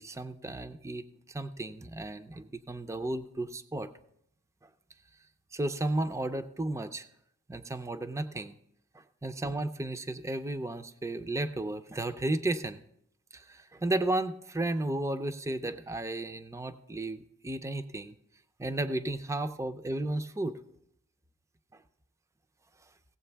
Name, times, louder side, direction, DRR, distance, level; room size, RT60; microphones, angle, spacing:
voice 1, 0.0-3.9 5.5-7.0 7.5-8.5 9.2-12.8 13.3-18.2 18.6-20.6 21.7-21.8, right 2 dB, 15° right, 11 dB, 0.4 m, -33 dB
17.0 x 7.7 x 3.4 m, 0.74 s
head